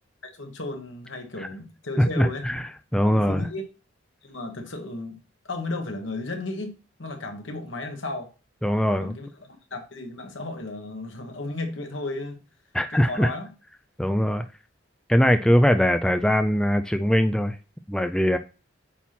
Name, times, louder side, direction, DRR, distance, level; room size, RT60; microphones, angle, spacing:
voice 1, 0.2-2.4 3.1-3.6 4.2-5.2 5.4-8.3 9.0-12.4 12.9-13.5, left 2 dB, 75° left, 1.4 m, -34 dB
voice 2, 2.0-3.4 8.6-9.1 12.7-13.3 14.0-14.4 15.1-17.6 17.9-18.4, equal, 5° left, 0.3 m, -21 dB
8.3 x 2.9 x 5.9 m
head